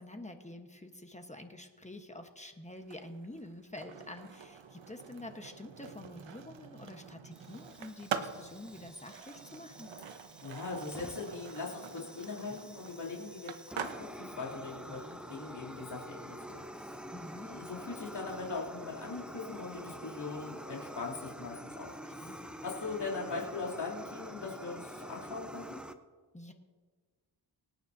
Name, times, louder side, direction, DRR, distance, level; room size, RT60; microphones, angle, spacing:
voice 1, 0.0-9.9 17.1-17.6 22.0-22.4 26.3-26.5, left 1 dB, 15° left, 5 dB, 1.1 m, -47 dB
Skateboard, 2.8-18.6, right 7 dB, 75° right, 1.1 m, -46 dB
Fire, 7.3-25.9, equal, ahead, 0.8 m, -47 dB
voice 2, 10.4-17.0 17.3-25.8, left 4 dB, 60° left, -6 dB, 3.1 m, -41 dB
25.5 x 9.2 x 2.7 m, 1.5 s
cardioid pair, 90°, 46 cm